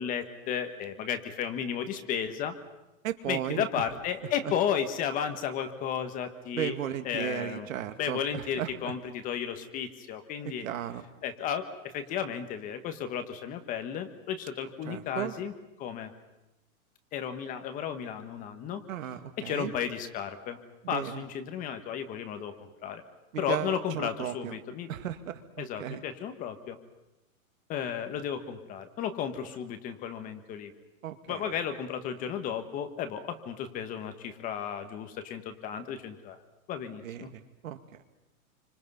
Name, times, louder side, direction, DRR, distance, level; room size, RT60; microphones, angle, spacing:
voice 1, 0.0-2.5 3.3-6.7 7.0-7.7 8.0-10.7 11.2-15.5 15.8-16.1 17.1-18.8 19.4-20.6 20.9-23.0 23.4-24.9 25.6-26.8 27.7-30.7 31.3-36.4 36.7-37.3, left 8 dB, 20° left, 8 dB, 1.3 m, -34 dB
voice 2, 3.0-3.8 4.2-4.5 6.5-8.9 10.4-11.1 14.8-15.3 18.9-19.7 20.8-21.2 23.3-24.6 24.9-26.0 31.0-31.5 37.0-38.0, right 10 dB, 65° right, 9 dB, 2.3 m, -36 dB
27.5 x 25.5 x 5.5 m, 0.97 s
supercardioid pair, 165°, 43 cm